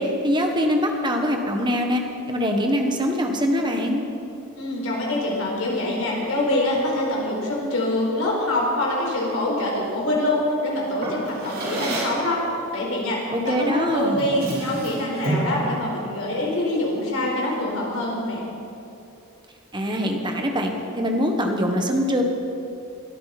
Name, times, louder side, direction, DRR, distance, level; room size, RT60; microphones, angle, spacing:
voice 1, 0.0-2.0 2.3-4.0 13.3-14.2 19.7-22.2, equal, 20° right, 3 dB, 1.4 m, -23 dB
voice 2, 4.6-12.4 12.7-18.4, left 1 dB, 75° left, -3 dB, 4.6 m, -25 dB
Drawer open or close, 11.0-12.3 13.5-13.7 14.1-15.6, right 1 dB, 45° right, 4.1 m, -28 dB
21.5 x 13.0 x 4.3 m, 2.7 s
head